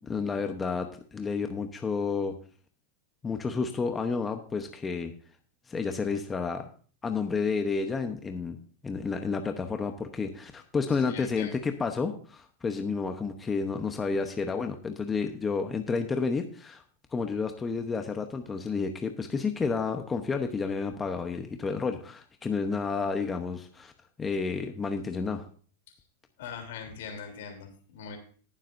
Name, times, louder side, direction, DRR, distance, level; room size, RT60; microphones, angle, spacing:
voice 1, 0.0-2.4 3.2-5.1 5.7-6.7 7.0-8.6 8.8-16.8 17.1-23.9 24.2-25.4, left 4 dB, 15° left, 6 dB, 0.9 m, -30 dB
voice 2, 11.1-11.6 26.4-28.2, left 6 dB, 75° left, 4 dB, 3.4 m, -41 dB
18.5 x 7.4 x 2.7 m, 0.43 s
hypercardioid pair, 125°, 0 cm